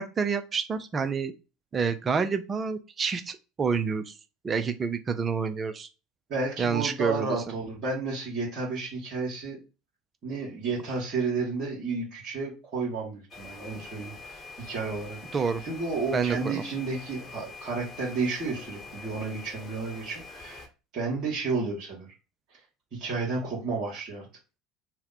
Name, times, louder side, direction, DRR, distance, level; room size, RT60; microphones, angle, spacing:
voice 1, 0.0-1.3 1.7-4.1 4.4-5.9 6.6-7.4 15.3-15.6 16.1-16.6, right 5 dB, 30° right, 9 dB, 0.4 m, -28 dB
voice 2, 6.3-9.6 10.2-20.7 20.9-22.1 22.5-22.6 22.9-24.3, right 4 dB, 50° right, -5 dB, 1.2 m, -32 dB
sound 1, 13.3-20.7, left 3 dB, 20° left, 0.9 m, -45 dB
2.8 x 2.1 x 3.9 m, 0.30 s
figure-of-eight pair, 70°, 0 cm